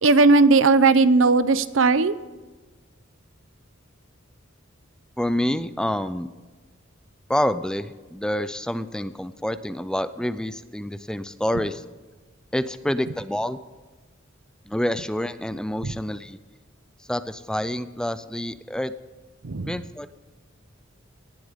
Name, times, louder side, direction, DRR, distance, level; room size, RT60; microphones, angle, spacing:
voice 1, 0.0-2.1 15.8-16.0 19.4-19.7, right 3 dB, 75° right, 14 dB, 0.7 m, -17 dB
voice 2, 5.2-6.3 7.3-11.8 12.5-13.6 14.7-16.4 17.0-18.9 19.7-20.1, left 1 dB, 5° left, 13 dB, 0.5 m, -27 dB
18.5 x 11.5 x 3.7 m, 1.3 s
head